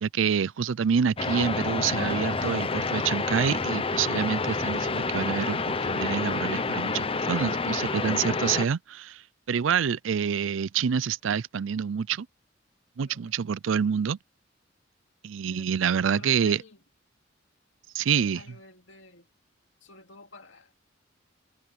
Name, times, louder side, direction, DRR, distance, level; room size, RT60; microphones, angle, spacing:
voice 1, 0.0-9.2 9.5-12.3 13.0-14.2 15.2-16.6 17.9-18.6, right 7 dB, 90° right, 0.4 m, -27 dB
sound 1, 1.2-8.7, left 4 dB, 30° left, 0.8 m, -28 dB
voice 2, 13.0-13.4 15.5-15.8 16.1-16.8 18.1-19.3 19.8-20.9, left 2 dB, 70° left, 2.7 m, -49 dB
head